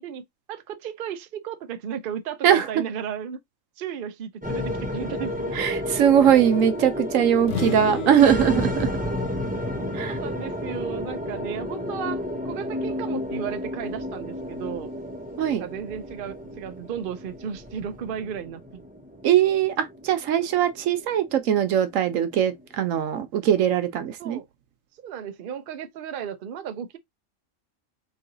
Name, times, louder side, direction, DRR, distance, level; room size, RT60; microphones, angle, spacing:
voice 1, 0.0-3.4 3.8-5.5 10.0-14.9 15.6-18.8 24.2-24.5 25.0-27.0, right 8 dB, 55° right, 0.7 m, -34 dB
sound 1, 4.4-22.8, left 1 dB, 10° right, 0.4 m, -32 dB
voice 2, 5.5-8.9 9.9-10.2 15.4-15.6 19.2-24.4, right 9 dB, 85° right, 1.1 m, -21 dB
sound 2, 7.4-11.1, left 7 dB, 70° left, 1.1 m, -36 dB
3.1 x 2.7 x 3.8 m
omnidirectional pair, 1.3 m